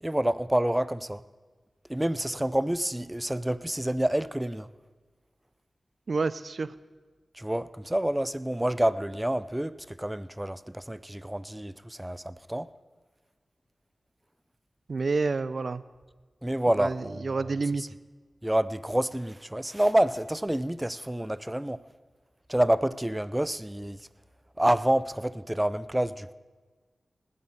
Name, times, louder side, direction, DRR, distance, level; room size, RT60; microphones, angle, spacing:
voice 1, 0.0-1.2 1.9-4.7 7.3-12.7 16.4-17.5 18.4-21.8 22.5-24.0 24.6-26.3, right 1 dB, 15° right, 0.5 m, -28 dB
voice 2, 6.1-6.7 14.9-15.8 16.7-17.8, right 4 dB, 65° right, 0.5 m, -29 dB
19.5 x 7.7 x 5.7 m
cardioid pair, 45°, 0 cm